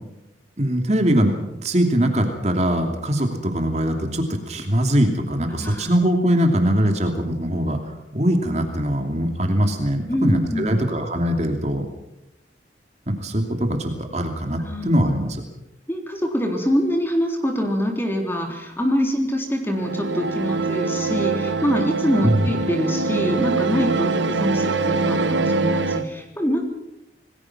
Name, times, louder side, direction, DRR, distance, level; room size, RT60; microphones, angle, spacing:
voice 1, 0.6-7.8 8.1-11.8 13.1-15.4 22.2-22.5, equal, 35° right, 4 dB, 2.8 m, -21 dB
voice 2, 5.5-5.9 10.1-10.9 14.6-14.9 15.9-26.6, equal, 10° left, 2 dB, 3.7 m, -24 dB
sound 1, 19.7-26.1, right 3 dB, 80° right, 1.3 m, -23 dB
27.5 x 20.0 x 6.1 m, 0.90 s
head